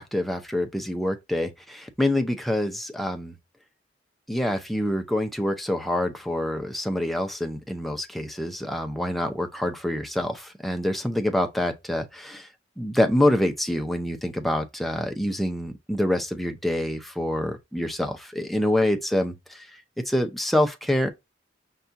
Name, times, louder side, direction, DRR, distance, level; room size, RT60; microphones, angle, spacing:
voice 1, 0.0-3.3 4.3-12.5 12.8-21.1, left 1 dB, ahead, 0.5 m, -26 dB
5.6 x 2.3 x 2.5 m
head